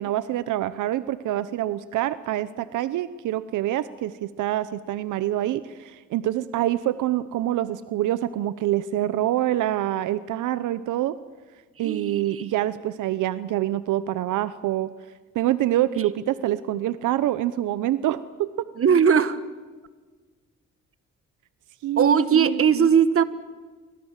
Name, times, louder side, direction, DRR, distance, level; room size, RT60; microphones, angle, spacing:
voice 1, 0.0-11.2 11.8-14.9 15.3-18.7 21.8-22.9, right 13 dB, 85° right, 15 dB, 0.9 m, -26 dB
voice 2, 11.8-12.5 18.8-19.4 22.0-23.2, right 7 dB, 45° right, 13 dB, 1.7 m, -19 dB
27.0 x 24.5 x 7.4 m, 1.4 s
cardioid pair, 90°, 30 cm